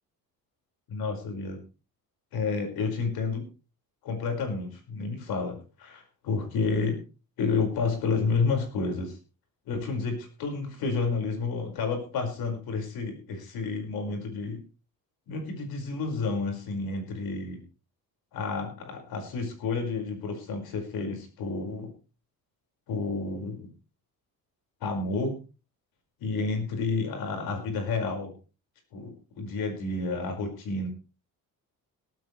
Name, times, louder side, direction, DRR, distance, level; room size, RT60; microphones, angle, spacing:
voice 1, 0.9-1.6 2.3-3.5 4.0-7.0 7.4-9.2 9.7-14.6 15.3-17.6 18.3-21.9 22.9-23.7 24.8-25.4 26.2-28.3 28.9-30.9, left 4 dB, 85° left, 4 dB, 5.3 m, -30 dB
18.0 x 14.0 x 3.2 m, 0.33 s
cardioid pair, 165°, 36 cm